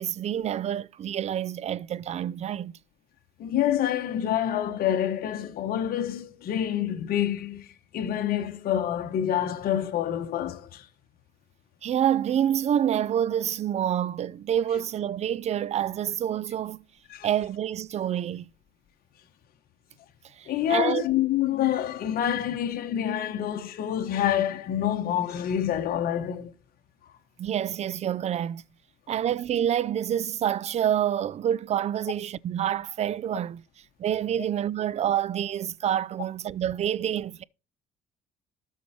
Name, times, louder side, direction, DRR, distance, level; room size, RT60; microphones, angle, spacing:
voice 1, 0.0-2.7 11.8-16.8 17.2-18.5 20.4-21.0 27.4-28.6 29.1-33.6 34.0-37.4, right 10 dB, 40° right, 0.4 m, -27 dB
voice 2, 3.4-10.9 17.1-17.3 20.5-26.5 27.0-27.1, left 10 dB, 60° left, 1.2 m, -27 dB
12.5 x 4.6 x 4.3 m
cardioid pair, 110°, 17 cm